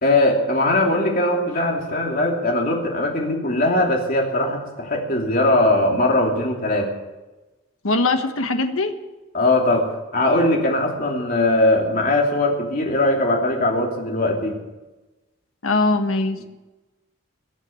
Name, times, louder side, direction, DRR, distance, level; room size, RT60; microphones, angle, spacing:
voice 1, 0.0-6.9 9.3-14.6, left 1 dB, 40° left, 1 dB, 2.9 m, -20 dB
voice 2, 7.8-8.9 15.6-16.4, left 2 dB, 80° left, 7 dB, 1.4 m, -21 dB
22.0 x 7.4 x 8.6 m, 1.1 s
head